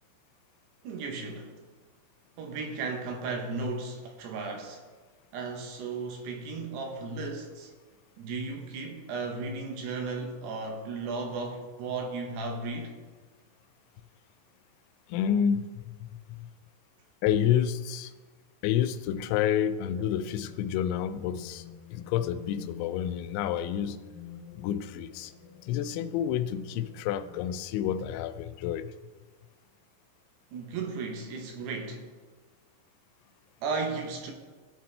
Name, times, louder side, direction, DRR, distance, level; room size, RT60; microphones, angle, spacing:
voice 1, 0.8-1.6 2.4-4.8 5.3-7.7 8.2-13.0 30.5-32.1 33.6-34.3, right 4 dB, 75° right, 2 dB, 2.9 m, -35 dB
voice 2, 15.1-16.5 17.2-18.1 18.6-21.7 21.9-24.0 24.6-25.3 25.6-28.9, left 9 dB, 90° left, 12 dB, 2.9 m, -29 dB
sound 1, 20.0-28.0, left 8 dB, 70° left, 2.1 m, -48 dB
17.0 x 6.0 x 3.3 m, 1.3 s
omnidirectional pair, 5.2 m